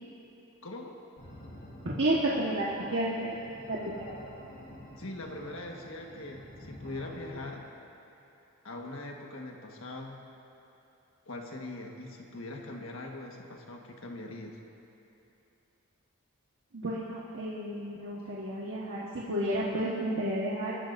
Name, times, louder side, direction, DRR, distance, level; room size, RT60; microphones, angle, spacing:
voice 1, 0.6-1.0 5.0-7.6 8.6-10.2 11.3-14.6, left 2 dB, 65° left, 1 dB, 1.5 m, -42 dB
sound 1, 1.2-7.6, left 1 dB, 40° left, 3.8 m, -49 dB
voice 2, 1.8-3.3 3.7-4.0 16.7-20.8, right 1 dB, 60° right, -6 dB, 1.5 m, -31 dB
24.5 x 13.0 x 2.7 m, 2.9 s
head